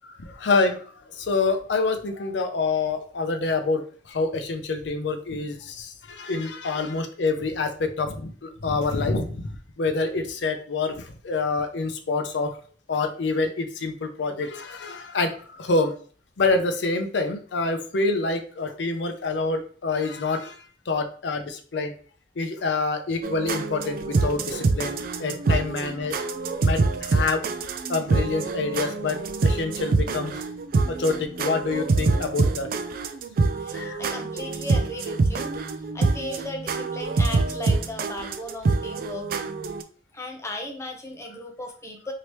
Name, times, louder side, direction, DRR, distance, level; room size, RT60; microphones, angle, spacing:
voice 1, 0.3-0.8 1.1-9.5 9.8-11.0 11.2-12.5 12.9-15.9 16.4-20.6 20.9-21.9 22.4-26.1 26.6-27.4 27.9-30.4 30.9-32.7 33.7-34.0, left 3 dB, 75° left, 7 dB, 0.5 m, -26 dB
sound 1, 23.2-39.8, right 3 dB, 55° right, 0.3 m, -25 dB
voice 2, 33.6-35.5 35.9-39.3 40.1-42.1, left 1 dB, 15° left, 3 dB, 0.6 m, -36 dB
3.1 x 2.8 x 3.0 m, 0.44 s
head